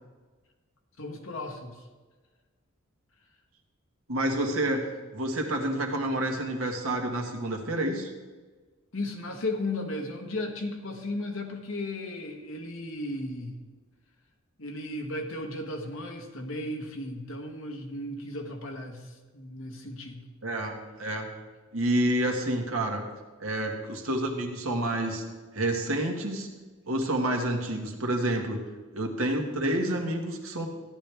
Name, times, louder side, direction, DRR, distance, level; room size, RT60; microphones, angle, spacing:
voice 1, 1.0-1.8 8.9-13.6 14.6-20.3, left 1 dB, 70° left, 2 dB, 1.5 m, -35 dB
voice 2, 4.1-4.8 5.1-8.1 20.4-21.3 21.7-23.0 23.4-25.2 25.5-26.5 26.9-28.6 28.9-30.7, right 1 dB, 85° right, 2 dB, 1.7 m, -28 dB
14.0 x 10.5 x 3.5 m, 1.3 s
head